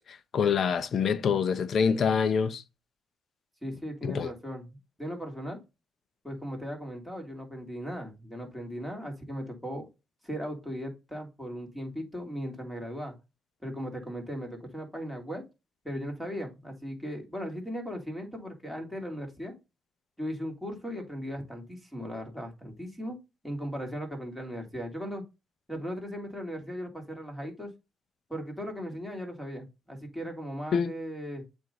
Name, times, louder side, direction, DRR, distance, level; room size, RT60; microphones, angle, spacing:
voice 1, 0.1-2.6 4.0-4.3 30.7-30.9, left 6 dB, 55° left, 0.7 m, -26 dB
voice 2, 3.6-5.6 6.2-9.9 10.2-13.1 13.6-15.4 15.8-19.6 20.2-23.2 23.4-25.2 25.7-27.7 28.3-31.4, equal, ahead, 2.4 m, -37 dB
7.6 x 2.7 x 5.2 m
cardioid pair, 90°, 0 cm